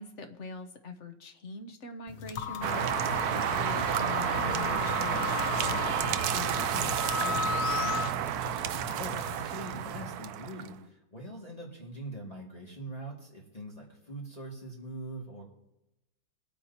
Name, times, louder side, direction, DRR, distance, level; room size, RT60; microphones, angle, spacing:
voice 1, 0.0-8.0, left 4 dB, 50° left, 6 dB, 0.9 m, -43 dB
sound 1, 2.1-10.1, left 7 dB, 65° left, 1.2 m, -45 dB
sound 2, 2.4-8.1, left 6 dB, 85° left, 0.6 m, -35 dB
sound 3, 2.6-10.7, right 10 dB, 75° right, 0.8 m, -31 dB
voice 2, 8.9-15.4, right 1 dB, 20° left, -4 dB, 2.1 m, -42 dB
22.0 x 8.7 x 2.9 m, 0.94 s
omnidirectional pair, 2.1 m